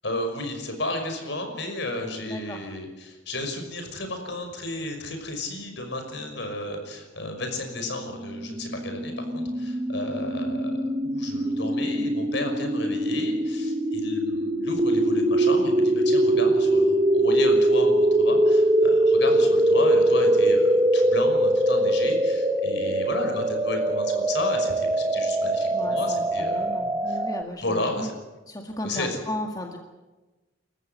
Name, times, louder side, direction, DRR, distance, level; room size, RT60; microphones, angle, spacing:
voice 1, 0.0-26.7 27.1-27.2 27.6-28.1 28.8-29.2, left 1 dB, 60° left, 5 dB, 5.8 m, -33 dB
voice 2, 2.1-2.7 25.7-28.1 28.5-29.8, left 1 dB, 20° left, 2 dB, 1.8 m, -35 dB
sound 1, 8.3-27.4, right 1 dB, 15° right, 0.9 m, -22 dB
29.0 x 14.5 x 8.2 m, 1.1 s
head